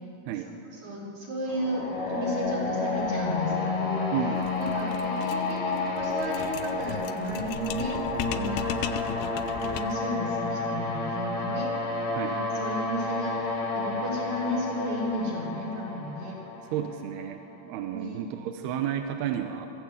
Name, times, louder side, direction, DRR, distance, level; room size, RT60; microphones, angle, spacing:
voice 1, 0.8-4.1 4.6-8.0 8.2-11.7 12.2-16.4 17.9-18.2, equal, 50° right, -3 dB, 5.1 m, -34 dB
sound 1, 1.5-17.3, left 3 dB, 35° left, 3.1 m, -31 dB
voice 2, 4.1-4.6 12.1-12.4 16.7-19.7, right 10 dB, 85° right, 6 dB, 3.0 m, -32 dB
sound 2, 4.4-10.1, left 10 dB, 80° left, 2.5 m, -37 dB
23.5 x 15.0 x 8.1 m, 2.8 s
omnidirectional pair, 4.6 m